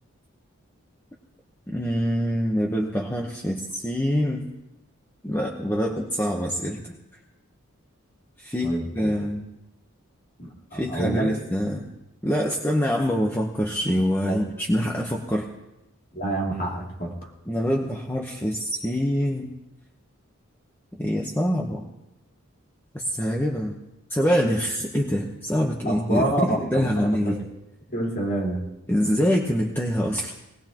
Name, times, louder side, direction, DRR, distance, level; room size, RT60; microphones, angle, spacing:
voice 1, 1.7-4.5 5.2-7.0 8.4-9.5 10.7-11.9 12.2-15.5 17.5-19.5 20.9-21.9 22.9-23.7 24.1-27.4 28.9-30.3, equal, 10° left, -1 dB, 1.0 m, -25 dB
voice 2, 8.6-9.3 10.4-11.4 14.3-14.4 16.1-17.1 25.8-27.4 27.9-28.7, right 1 dB, 40° left, -2 dB, 2.9 m, -28 dB
19.5 x 19.0 x 3.0 m, 0.94 s
head